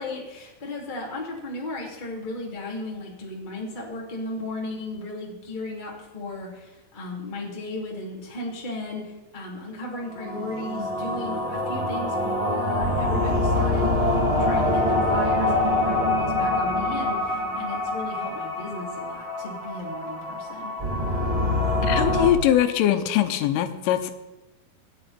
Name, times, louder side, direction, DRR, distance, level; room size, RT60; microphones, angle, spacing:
voice 1, 0.0-13.9 14.4-20.8, left 2 dB, 15° left, -2 dB, 1.9 m, -35 dB
sound 1, 10.0-22.3, left 1 dB, 50° right, 0.4 m, -25 dB
voice 2, 21.8-24.1, left 11 dB, 85° left, 8 dB, 3.4 m, -22 dB
27.0 x 9.4 x 4.4 m, 1.0 s
omnidirectional pair, 5.6 m